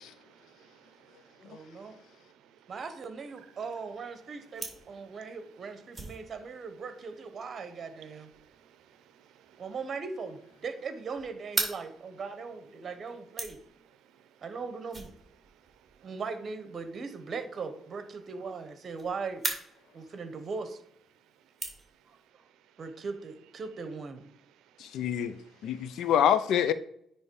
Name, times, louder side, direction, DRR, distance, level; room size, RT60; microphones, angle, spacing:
voice 1, 0.0-1.5 2.8-2.9 3.2-4.0 4.2-4.5 4.9-5.2 5.8-6.4 7.4-7.6 7.9-8.3 8.7-8.8 9.4-10.1 10.5-10.6, right 9 dB, 85° right, 0.6 m, -60 dB
voice 2, 1.4-2.0 2.7-8.3 9.6-13.6 14.4-15.1 16.0-19.4 19.9-20.8 22.1-22.2 22.8-24.3, right 4 dB, 45° right, 1.1 m, -39 dB
sound 1, 3.2-22.3, right 2 dB, 15° right, 2.4 m, -43 dB
voice 3, 24.9-25.4 25.6-26.7, left 9 dB, 80° left, 0.5 m, -26 dB
9.4 x 3.2 x 4.7 m
cardioid pair, 90°, 0 cm